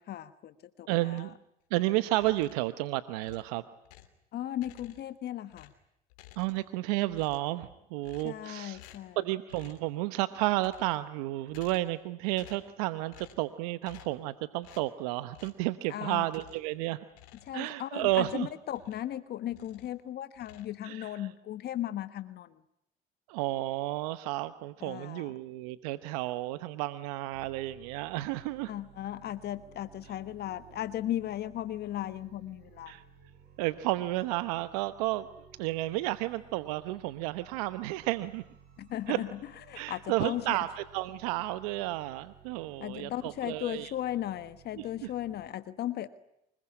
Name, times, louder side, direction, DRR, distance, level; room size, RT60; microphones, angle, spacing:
voice 1, 0.0-1.3 4.3-5.7 8.2-9.2 15.9-16.3 17.4-22.6 24.8-25.3 28.7-32.9 38.8-40.6 42.8-46.1, left 12 dB, 60° left, 13 dB, 1.4 m, -36 dB
voice 2, 0.9-1.3 1.7-3.6 6.4-8.8 9.2-17.0 17.5-18.5 20.8-21.1 23.3-28.7 32.9-33.0 33.6-35.3 35.6-38.4 39.1-39.2 39.7-43.9 44.8-44.9, right 17 dB, 90° right, 13 dB, 1.0 m, -32 dB
sound 1, 2.1-2.7 3.2-4.2 4.5-5.2 5.5-6.8 7.1-7.6 8.0-8.5 8.7-9.2 9.5-9.9 10.5-11.1 11.5-12.0 12.3-12.7 13.1-13.5 13.8-14.2 14.6-14.9 15.3-15.7 16.2-16.7 17.1-19.2 19.5-20.0 20.3-21.2, left 13 dB, 90° left, 3.0 m, -55 dB
sound 2, 27.3-45.5, right 9 dB, 65° right, 5.8 m, -57 dB
25.0 x 21.5 x 9.9 m, 0.81 s
supercardioid pair, 75°, 19 cm